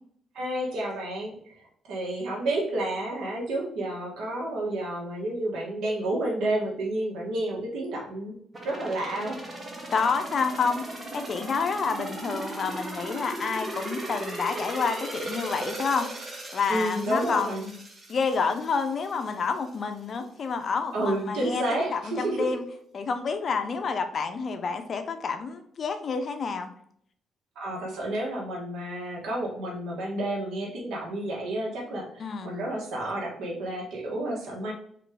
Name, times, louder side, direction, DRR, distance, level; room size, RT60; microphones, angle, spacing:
voice 1, 0.3-1.3 1.9-8.4 8.6-9.5 16.7-17.7 20.9-22.5 27.5-34.7, right 1 dB, 80° right, -3 dB, 1.6 m, -30 dB
sound 1, 8.5-19.3 19.7-19.8, right 2 dB, 30° right, 1.1 m, -37 dB
voice 2, 9.9-16.1 16.5-17.7 18.1-21.6 21.9-22.6 22.9-26.7 32.2-32.5, left 5 dB, 50° left, 7 dB, 0.6 m, -29 dB
3.9 x 3.2 x 3.4 m, 0.66 s
cardioid pair, 90°, 0 cm